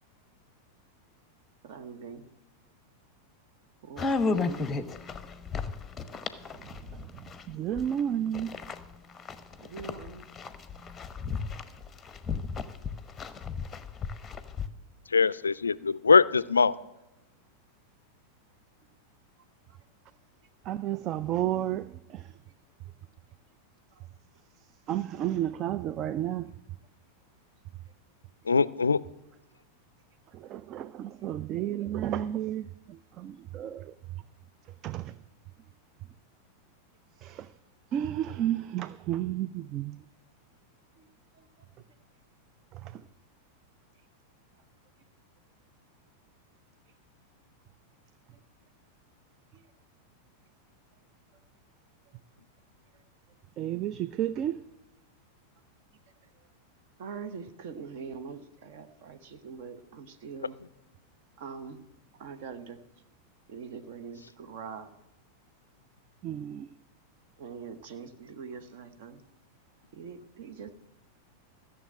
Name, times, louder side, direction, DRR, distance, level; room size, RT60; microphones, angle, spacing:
voice 1, 1.6-2.3 3.8-4.6 9.6-10.3 19.7-19.8 23.9-24.1 35.6-35.7 41.0-41.1 41.3-41.6 48.3-48.4 49.5-49.7 52.9-53.0 56.3-56.5 57.0-60.6 61.4-61.9 62.1-62.8 63.5-65.0 67.4-69.2 69.9-70.7, right 6 dB, 50° right, 1.0 m, -43 dB
sound 1, 4.0-8.0 8.3-14.7, left 4 dB, 15° left, 0.8 m, -34 dB
voice 2, 6.6-8.5 20.6-22.4 24.9-26.5 30.3-33.9 34.8-35.2 37.2-37.5 37.9-40.0 42.7-43.0 53.6-54.6 66.2-66.7, right 11 dB, 35° right, 0.3 m, -32 dB
voice 3, 15.1-16.7 28.5-29.0, left 5 dB, 75° left, 0.3 m, -22 dB
14.5 x 7.0 x 7.4 m
figure-of-eight pair, 90°, 0 cm